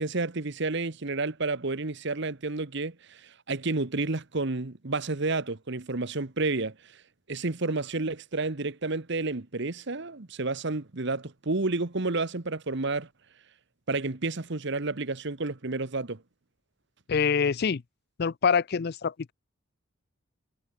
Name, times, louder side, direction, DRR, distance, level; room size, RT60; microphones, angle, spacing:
voice 1, 0.0-6.7 7.3-13.1 13.9-16.2, right 3 dB, 60° right, 1.2 m, -30 dB
voice 2, 17.1-17.8 18.2-19.3, left 6 dB, 50° left, 0.5 m, -25 dB
head